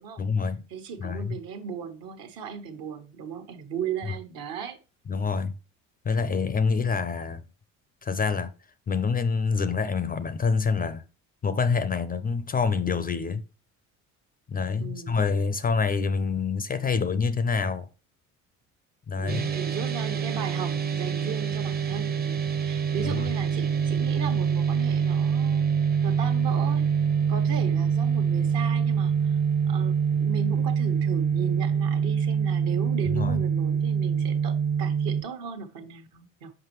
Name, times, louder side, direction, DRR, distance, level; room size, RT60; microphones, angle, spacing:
voice 1, 0.2-0.7 1.0-1.4 4.1-4.2 5.1-5.5 6.0-7.4 8.0-8.5 8.9-11.0 11.4-13.4 14.5-17.9 19.1-19.5 23.0-23.3 33.1-33.4, left 5 dB, 25° left, 0.4 m, -26 dB
voice 2, 0.7-4.8 14.8-15.2 19.2-25.6 26.0-26.9 27.3-29.4 29.7-36.5, right 7 dB, 65° right, 1.2 m, -37 dB
sound 1, 19.3-35.2, right 7 dB, 25° right, 0.7 m, -25 dB
5.9 x 5.3 x 3.0 m
hypercardioid pair, 60°, 38 cm